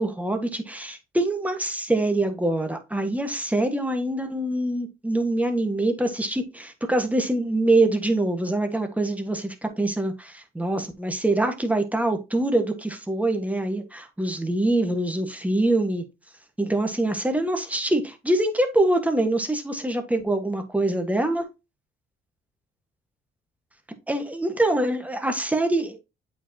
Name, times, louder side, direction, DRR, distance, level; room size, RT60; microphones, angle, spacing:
voice 1, 0.0-16.0 16.6-21.4 24.1-26.0, right 1 dB, 5° right, 1.3 m, -24 dB
8.0 x 4.9 x 2.8 m
cardioid pair, 90°, 20 cm